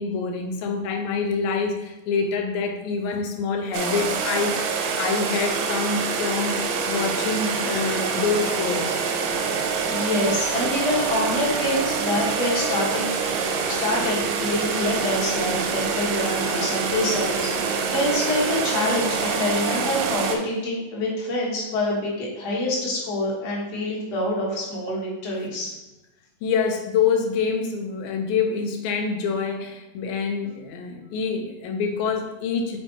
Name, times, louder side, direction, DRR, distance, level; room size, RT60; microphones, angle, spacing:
voice 1, 0.0-6.6 6.9-9.0 26.4-32.8, left 5 dB, 80° left, 3 dB, 2.4 m, -26 dB
sound 1, 3.7-20.4, right 5 dB, 80° right, 2.2 m, -26 dB
voice 2, 9.9-13.1 13.7-25.7, left 1 dB, 65° left, -4 dB, 0.7 m, -26 dB
5.3 x 4.3 x 4.4 m, 1.0 s
omnidirectional pair, 3.9 m